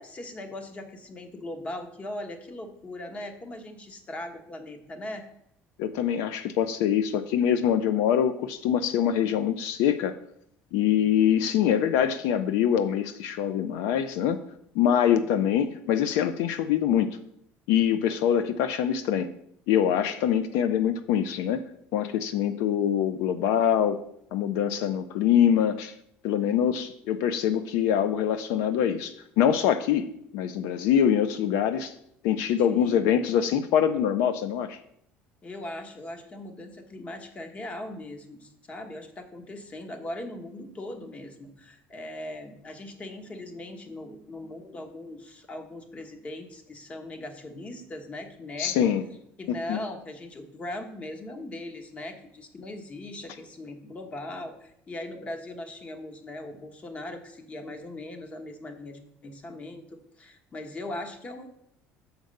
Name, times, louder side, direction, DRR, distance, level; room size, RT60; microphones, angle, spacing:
voice 1, 0.0-5.2 15.1-15.3 32.7-33.2 35.4-49.0 49.4-59.8 60.2-61.5, left 1 dB, 25° left, 6 dB, 1.2 m, -39 dB
voice 2, 5.8-10.1 10.7-14.4 14.7-17.2 17.7-19.3 19.7-24.0 24.3-25.9 26.2-31.9 32.2-34.8 48.6-49.0 49.5-49.8, left 9 dB, 80° left, 11 dB, 0.5 m, -24 dB
6.5 x 4.6 x 6.4 m, 0.74 s
cardioid pair, 120°, 5 cm